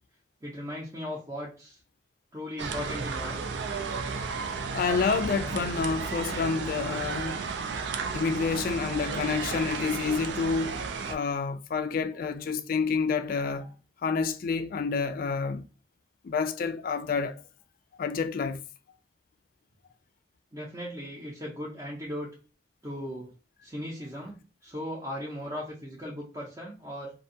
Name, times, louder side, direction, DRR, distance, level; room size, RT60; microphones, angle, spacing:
voice 1, 0.4-1.8 2.3-3.4 20.5-22.3 22.8-23.3 23.6-27.1, equal, 20° right, 0.5 m, -37 dB
sound 1, 2.6-11.2, right 4 dB, 80° right, 0.4 m, -33 dB
voice 2, 4.7-7.5 8.1-10.8 11.1-13.7 14.0-15.6 16.2-17.4 18.0-18.6, left 5 dB, 50° left, 0.3 m, -28 dB
2.5 x 2.2 x 2.6 m
head